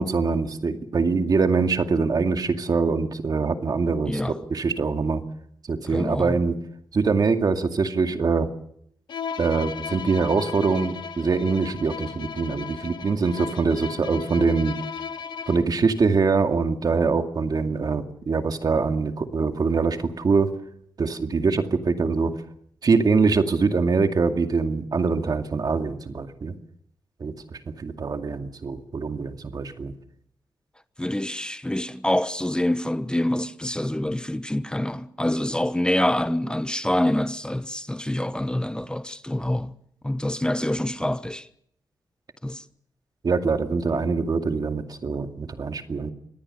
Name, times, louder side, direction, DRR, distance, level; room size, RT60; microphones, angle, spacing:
voice 1, 0.0-5.2 5.7-6.6 6.9-8.5 9.4-14.8 15.5-20.5 21.0-22.3 22.8-26.5 27.2-29.9 43.2-46.1, right 4 dB, 60° right, 2.3 m, -23 dB
voice 2, 4.1-4.4 5.9-6.4 31.0-39.7 40.0-41.5 42.4-42.6, left 1 dB, 10° left, 1.1 m, -26 dB
Bowed string instrument, 9.1-15.8, left 6 dB, 80° left, 1.4 m, -36 dB
25.5 x 18.5 x 6.8 m
cardioid pair, 50°, 8 cm